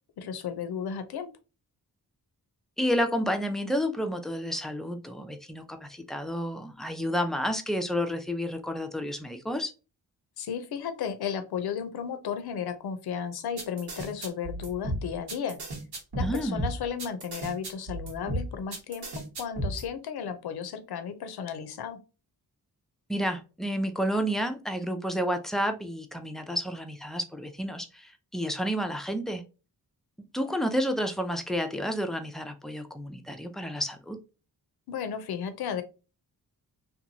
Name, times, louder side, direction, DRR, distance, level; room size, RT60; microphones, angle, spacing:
voice 1, 0.2-1.3 10.4-15.6 16.2-19.1 19.4-22.0 34.9-35.8, left 7 dB, 80° left, 9 dB, 0.6 m, -34 dB
voice 2, 2.8-9.7 16.2-16.7 23.1-29.4 30.3-34.2, equal, ahead, 6 dB, 0.3 m, -30 dB
sound 1, 13.6-19.8, right 1 dB, 90° right, 1.1 m, -33 dB
2.9 x 2.2 x 2.6 m, 0.31 s
wide cardioid pair, 95°, 38 cm